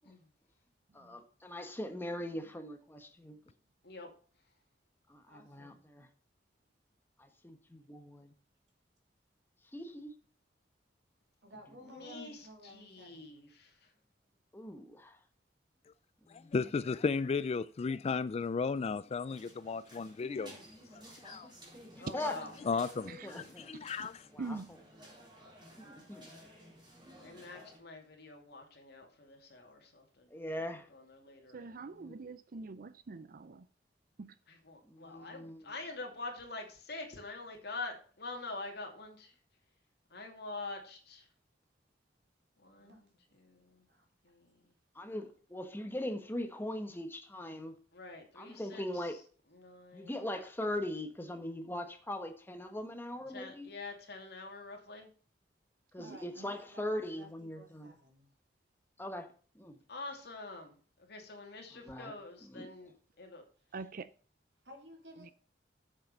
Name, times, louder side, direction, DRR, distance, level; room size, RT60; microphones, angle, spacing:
voice 1, 0.9-3.4 5.3-6.1 7.2-8.3 9.7-10.1 12.1-12.3 14.5-15.2 16.3-16.5 21.9-22.4 23.2-23.7 24.3-24.6 25.8-26.3 30.3-30.9 32.0-32.1 34.8-35.6 44.9-47.7 48.3-49.2 49.9-53.7 55.9-57.9 59.0-59.3 59.5-59.8 61.9-62.1 62.6-62.7, left 1 dB, 10° left, 1.2 m, -40 dB
voice 2, 5.3-5.8 11.4-13.4 42.8-43.0 43.3-43.4 43.9-44.1 56.0-57.3 57.5-58.3 64.6-65.3, equal, 70° right, 3.2 m, -55 dB
voice 3, 11.8-13.7 22.0-22.5 27.2-30.3 30.9-31.8 34.5-39.3 40.1-41.2 42.6-43.0 43.4-43.8 44.2-44.6 47.9-49.1 49.5-50.2 53.3-55.1 59.9-60.7 61.1-62.9 63.2-63.4, left 3 dB, 65° left, 2.5 m, -46 dB
voice 4, 16.3-20.6 20.9-21.5 22.7-24.3, left 5 dB, 35° left, 0.3 m, -34 dB
sound 1, 19.3-27.8, equal, 25° right, 4.0 m, -54 dB
voice 5, 23.7-24.1 24.4-24.7 31.5-33.7 34.2-34.3 56.0-56.5 63.7-64.1 65.2-65.3, right 3 dB, 50° right, 0.5 m, -45 dB
7.5 x 7.2 x 5.3 m
head